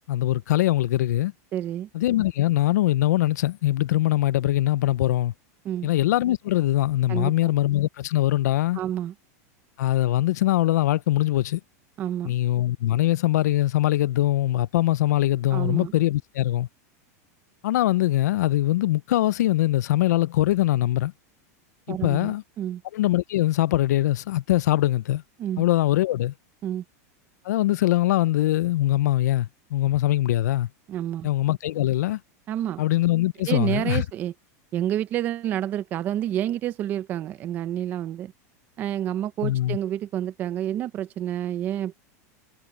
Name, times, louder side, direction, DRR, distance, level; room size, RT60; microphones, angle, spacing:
voice 1, 0.0-1.3 1.9-5.3 5.8-8.8 9.8-11.6 12.2-16.7 17.6-21.1 21.9-22.4 22.9-25.2 25.6-26.3 27.4-30.7 31.2-32.2 32.8-34.0 39.4-39.8, left 14 dB, 85° left, 0.5 m, -22 dB
voice 2, 1.5-1.9 5.6-5.9 7.1-7.5 8.8-9.1 12.0-12.4 15.5-15.9 21.9-22.8 25.4-25.6 26.6-26.8 30.9-31.3 32.5-32.8 33.5-34.3 34.7-38.3 38.8-41.9, right 11 dB, 20° right, 0.6 m, -29 dB
supercardioid pair, 180°, 9 cm